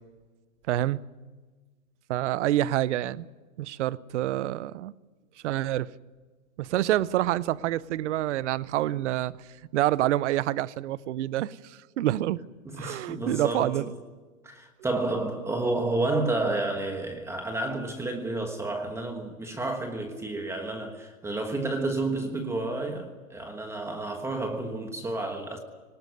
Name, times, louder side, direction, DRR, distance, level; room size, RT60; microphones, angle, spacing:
voice 1, 0.7-1.0 2.1-3.2 3.6-4.9 5.4-5.9 6.6-12.4 12.8-13.8, right 14 dB, 60° right, 0.7 m, -27 dB
voice 2, 12.6-13.9 14.4-25.6, right 2 dB, 5° right, 1.3 m, -30 dB
19.0 x 19.0 x 9.5 m
hypercardioid pair, 155°, 40 cm